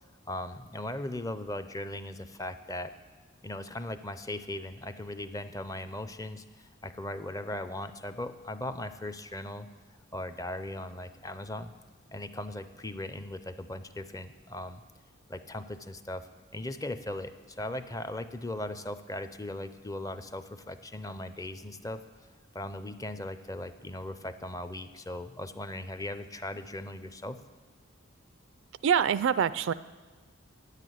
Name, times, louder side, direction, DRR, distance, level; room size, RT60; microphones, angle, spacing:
voice 1, 0.3-2.9 3.4-9.7 10.1-11.7 12.1-14.8 15.3-16.3 16.5-22.0 22.5-27.4, left 1 dB, 15° left, 10 dB, 0.5 m, -38 dB
voice 2, 28.8-29.7, right 8 dB, 65° right, 16 dB, 0.4 m, -25 dB
10.0 x 8.2 x 9.2 m, 1.3 s
head